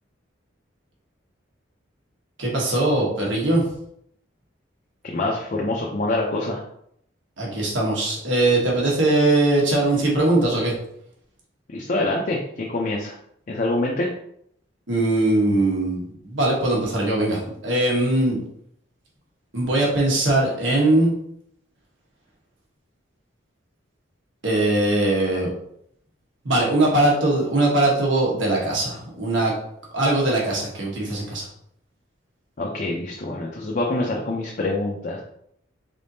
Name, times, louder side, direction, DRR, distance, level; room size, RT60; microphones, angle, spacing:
voice 1, 2.4-3.6 7.4-10.7 14.9-18.4 19.5-21.1 24.4-25.5 26.4-29.5 29.9-31.5, right 2 dB, 70° right, -3 dB, 1.2 m, -21 dB
voice 2, 5.0-6.6 11.7-13.1 13.5-14.1 32.6-35.2, left 2 dB, 45° left, -2 dB, 0.5 m, -25 dB
3.9 x 3.5 x 2.7 m, 0.71 s
head